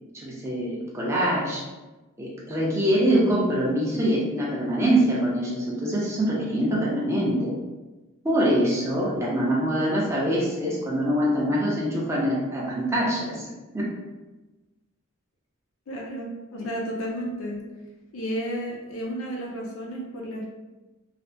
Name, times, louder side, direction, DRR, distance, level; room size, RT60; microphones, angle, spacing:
voice 1, 0.1-1.6 2.2-7.5 8.2-13.5 13.7-13.9, right 1 dB, 15° right, -5 dB, 0.5 m, -24 dB
voice 2, 15.9-17.6 18.1-20.5, equal, 85° left, -1 dB, 0.6 m, -32 dB
3.3 x 2.1 x 2.6 m, 1.1 s
head